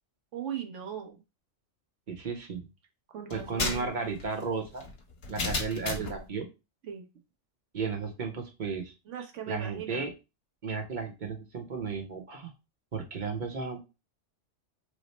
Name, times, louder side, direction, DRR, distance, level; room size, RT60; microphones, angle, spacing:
voice 1, 0.3-1.2 3.1-3.9 5.9-6.2 6.9-7.1 9.1-10.0, right 9 dB, 85° right, 4 dB, 1.1 m, -39 dB
voice 2, 2.1-2.7 3.3-4.8 5.3-6.5 7.7-8.9 9.5-10.1 10.6-12.5 12.9-13.8, right 5 dB, 50° right, 2 dB, 0.8 m, -34 dB
sound 1, 3.3-6.2, left 3 dB, 60° left, 1.0 m, -34 dB
3.1 x 2.0 x 4.0 m, 0.27 s
omnidirectional pair, 1.2 m